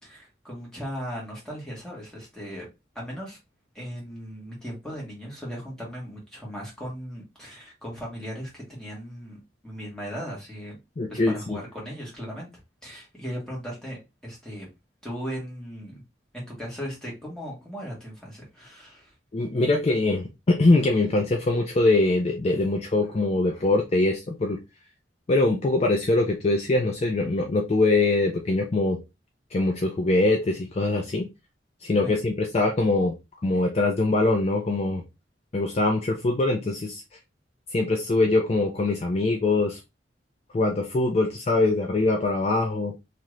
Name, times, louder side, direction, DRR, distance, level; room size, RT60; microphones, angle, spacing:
voice 1, 0.0-2.7 2.9-3.4 3.7-10.8 11.1-12.5 12.8-14.7 15.0-16.0 16.3-19.1 32.0-32.2, equal, 5° left, 1.4 m, -37 dB
voice 2, 11.0-11.6 19.3-24.6 25.3-29.0 29.5-31.3 31.8-33.1 33.4-35.0 35.5-37.0 37.7-39.8 40.5-42.9, left 2 dB, 35° left, 0.4 m, -23 dB
2.8 x 2.5 x 3.1 m
head